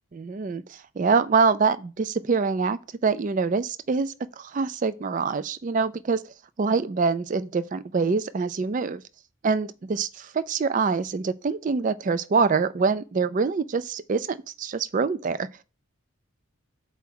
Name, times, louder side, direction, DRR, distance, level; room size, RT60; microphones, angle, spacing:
voice 1, 0.1-9.0 9.4-15.5, right 4 dB, 35° right, 0.3 m, -25 dB
5.6 x 4.7 x 6.0 m
head